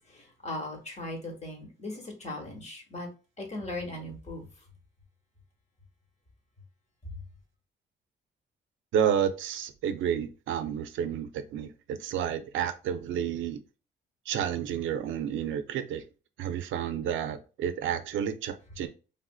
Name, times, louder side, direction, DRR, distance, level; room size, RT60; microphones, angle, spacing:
voice 1, 0.1-3.1 3.4-4.5, left 2 dB, 35° left, 1.2 m, -38 dB
voice 2, 8.9-13.6 14.3-16.0 16.4-18.9, right 9 dB, 75° right, 0.4 m, -30 dB
3.3 x 2.4 x 2.3 m
cardioid pair, 90°, 20 cm